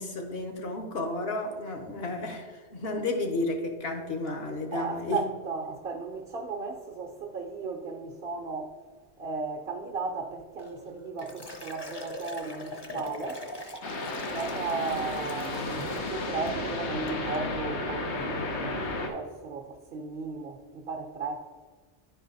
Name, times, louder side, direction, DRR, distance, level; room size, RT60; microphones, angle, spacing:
voice 1, 0.0-5.2, left 2 dB, 65° left, 1.2 m, -32 dB
voice 2, 4.7-8.8 9.2-13.5 13.7-13.8 14.3-21.5, right 4 dB, 60° right, 0.8 m, -35 dB
Liquid, 10.6-16.1 16.5-16.7 17.1-17.4, left 2 dB, 25° left, 0.7 m, -42 dB
sound 1, 13.8-19.1, left 2 dB, 85° left, 1.2 m, -33 dB
10.5 x 4.5 x 3.9 m
omnidirectional pair, 1.1 m